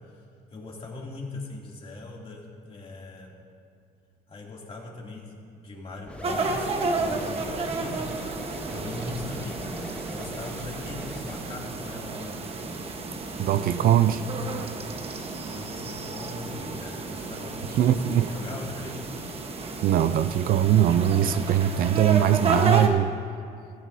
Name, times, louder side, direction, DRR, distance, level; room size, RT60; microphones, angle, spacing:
voice 1, 0.5-3.3 4.3-7.5 7.8-8.1 8.7-9.6 10.1-12.4 15.4-19.0, left 2 dB, 35° left, -2 dB, 2.7 m, -40 dB
sound 1, 6.0-11.4, left 1 dB, 5° left, 1.1 m, -41 dB
sound 2, 6.2-22.9, right 3 dB, 35° right, 1.2 m, -32 dB
voice 2, 13.4-14.2 14.5-14.6 17.8-18.3 19.8-23.2, right 10 dB, 60° right, 12 dB, 0.4 m, -21 dB
15.0 x 15.0 x 2.7 m, 2.5 s
cardioid pair, 110°, 17 cm